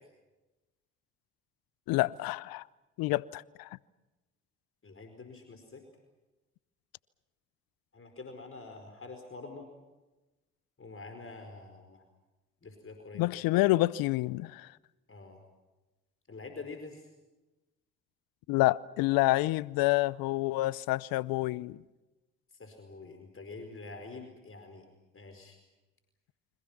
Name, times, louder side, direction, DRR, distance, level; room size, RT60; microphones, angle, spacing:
voice 1, 1.9-2.6 3.0-3.7 13.1-14.7 18.5-21.8, left 19 dB, 70° left, 0.7 m, -28 dB
voice 2, 4.8-5.8 7.9-9.7 10.8-12.0 12.6-13.2 15.1-15.4 16.3-17.1 22.5-24.9 25.1-25.6, left 3 dB, 35° left, 4.8 m, -46 dB
30.0 x 25.0 x 5.9 m
hypercardioid pair, 50°, 36 cm